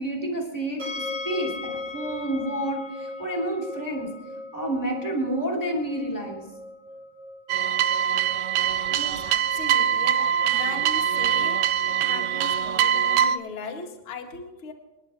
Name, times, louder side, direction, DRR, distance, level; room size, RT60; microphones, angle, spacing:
voice 1, 0.0-4.1 4.5-6.4, right 1 dB, 5° left, 0 dB, 2.7 m, -29 dB
sound 1, 0.8-13.8, left 3 dB, 40° right, 4.2 m, -39 dB
sound 2, 7.5-13.4, right 9 dB, 85° right, 1.6 m, -23 dB
voice 2, 8.6-11.6 11.9-14.7, left 4 dB, 45° left, 1 dB, 2.5 m, -38 dB
26.5 x 11.0 x 3.1 m, 1.1 s
omnidirectional pair, 3.9 m